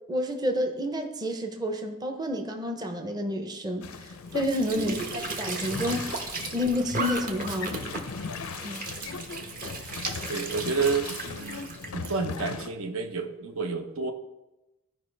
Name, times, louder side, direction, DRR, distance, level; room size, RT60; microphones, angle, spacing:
voice 1, 0.1-6.2 6.5-7.8 8.6-8.9, equal, 20° right, 4 dB, 0.6 m, -30 dB
sound 1, 3.8-12.7, left 5 dB, 90° left, 0.5 m, -38 dB
Squeak / Sink (filling or washing) / Trickle dribble, 4.3-12.2, right 3 dB, 40° right, 1.0 m, -36 dB
voice 2, 10.3-11.6 11.9-14.1, right 4 dB, 80° right, 5 dB, 0.9 m, -30 dB
14.0 x 5.1 x 3.3 m, 0.99 s
head